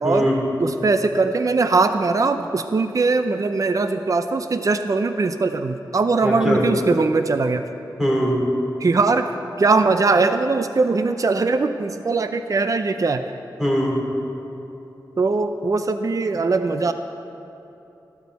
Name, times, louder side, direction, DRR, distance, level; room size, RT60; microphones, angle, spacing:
voice 1, 0.0-0.4 6.2-6.7 8.0-8.4 13.6-14.0, equal, 10° right, -3 dB, 3.3 m, -21 dB
voice 2, 0.6-7.7 8.8-13.3 15.2-16.9, right 3 dB, 45° right, 9 dB, 0.5 m, -21 dB
14.5 x 13.0 x 4.1 m, 2.9 s
wide cardioid pair, 80°, 8 cm